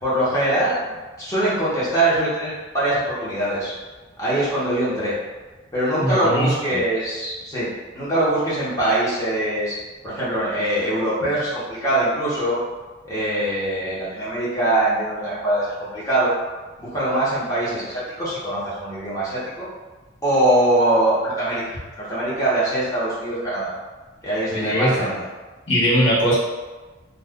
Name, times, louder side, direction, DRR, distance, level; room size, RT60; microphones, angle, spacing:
voice 1, 0.0-0.8 1.2-3.7 4.2-5.1 5.7-7.7 7.9-9.7 10.0-12.6 13.0-16.3 16.8-19.7 20.2-23.7 24.2-25.2, right 1 dB, 15° left, -9 dB, 0.9 m, -22 dB
voice 2, 6.0-6.8 24.5-25.1 25.7-26.4, equal, 70° left, -8 dB, 0.9 m, -20 dB
2.4 x 2.4 x 3.5 m, 1.2 s
head